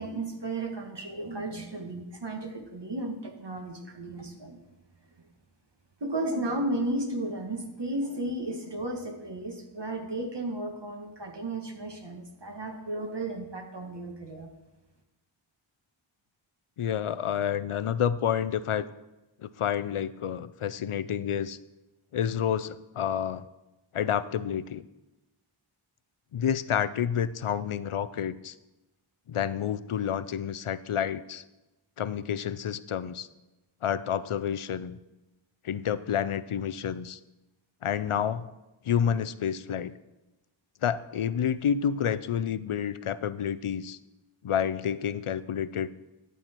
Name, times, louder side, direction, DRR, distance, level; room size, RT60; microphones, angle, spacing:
voice 1, 0.0-4.6 6.0-14.5, right 2 dB, 55° right, 3 dB, 1.7 m, -34 dB
voice 2, 16.8-18.9 19.4-21.6 22.1-23.5 23.9-24.9 26.3-28.5 29.3-31.4 32.0-33.3 33.8-35.0 35.6-37.2 37.8-38.5 38.8-39.9 40.8-44.0 44.4-45.9, left 8 dB, 85° left, 16 dB, 0.6 m, -29 dB
11.5 x 7.9 x 4.4 m, 1.0 s
wide cardioid pair, 45°, 49 cm